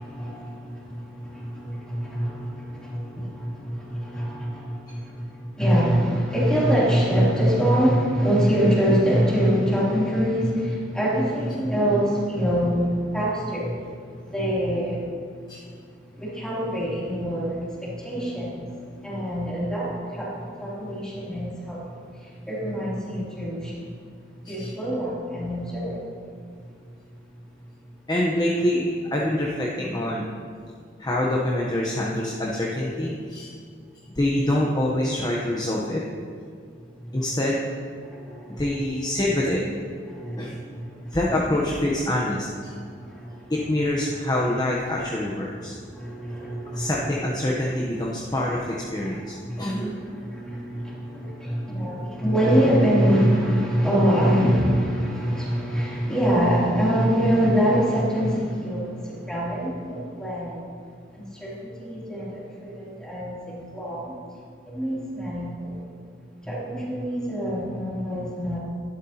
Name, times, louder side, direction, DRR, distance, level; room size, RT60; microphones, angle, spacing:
voice 1, 0.0-15.7 16.1-26.6 36.9-37.1 38.0-38.8 40.1-41.1 42.7-43.5 45.7-47.2 49.0-60.7 61.1-64.1 64.7-65.9 66.4-68.6, equal, 5° left, -8 dB, 3.0 m, -25 dB
voice 2, 28.1-28.9 29.1-30.3 31.0-33.5 34.2-36.0 37.1-37.7 38.5-39.6 40.4-40.6 41.1-42.7 43.5-45.8 46.7-49.9, left 1 dB, 20° left, -3 dB, 0.9 m, -25 dB
11.5 x 11.5 x 2.9 m, 2.1 s
head